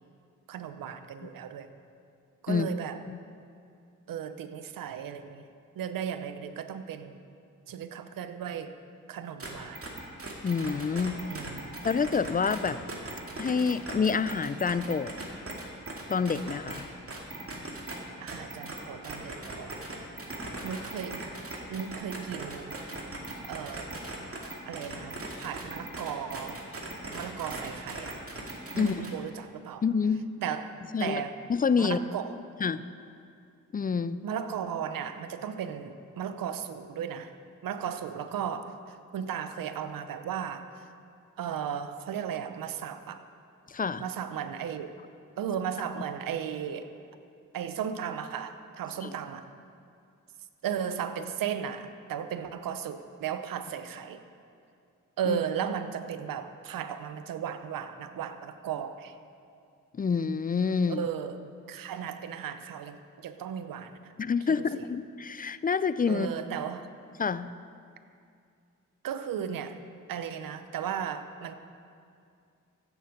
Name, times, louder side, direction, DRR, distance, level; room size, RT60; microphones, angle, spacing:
voice 1, 0.5-1.7 2.4-3.0 4.1-5.4 5.8-7.2 7.7-8.8 9.1-9.8 11.3-11.8 18.2-19.8 20.6-21.3 21.7-22.8 23.5-23.9 24.7-26.6 27.1-28.2 28.7-29.8 30.4-31.4 31.8-32.4 34.2-37.3 37.6-40.9 41.4-43.2 44.0-45.0 45.4-46.9 47.5-49.5 50.6-54.2 55.2-59.2 60.9-61.4 61.7-64.1 64.5-64.8 66.1-66.9 69.0-69.8 70.1-71.5, right 8 dB, 75° right, 10 dB, 0.7 m, -35 dB
sound 1, 9.4-9.5 9.8-16.8 17.1-18.0 18.3-29.2, right 2 dB, 40° right, 2.3 m, -39 dB
voice 2, 10.4-11.2 11.8-12.8 13.4-15.1 16.1-16.9 28.7-29.0 29.8-30.3 30.9-31.2 31.5-32.0 32.6-32.8 33.7-34.2 43.7-44.0 49.0-49.1 55.3-55.4 59.9-61.0 64.2-66.3 67.2-67.5, left 5 dB, 25° left, 15 dB, 0.4 m, -27 dB
15.5 x 7.0 x 5.2 m, 2.4 s
cardioid pair, 55°, 34 cm